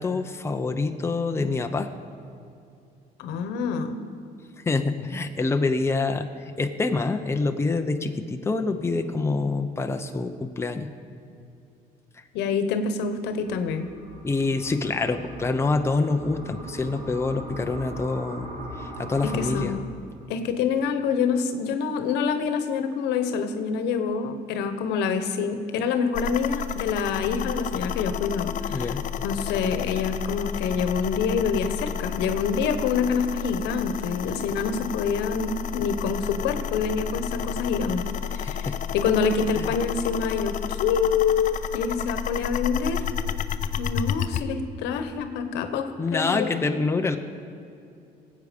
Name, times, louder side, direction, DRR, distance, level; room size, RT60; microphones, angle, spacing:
voice 1, 0.0-1.9 4.6-10.9 14.2-18.5 18.8-19.7 28.7-29.1 38.3-38.8 39.6-39.7 46.0-47.2, left 3 dB, 15° left, 6 dB, 0.7 m, -26 dB
voice 2, 3.2-4.0 12.3-13.9 19.2-19.8 20.3-28.9 29.2-38.0 38.4-38.7 38.9-43.0 43.8-46.5, left 5 dB, 90° left, 8 dB, 1.1 m, -26 dB
sound 1, 13.5-19.6, right 1 dB, 55° right, 2.5 m, -39 dB
sound 2, 26.1-44.4, left 8 dB, 50° left, 0.6 m, -31 dB
18.5 x 8.2 x 5.2 m, 2.6 s
cardioid pair, 110°, 17 cm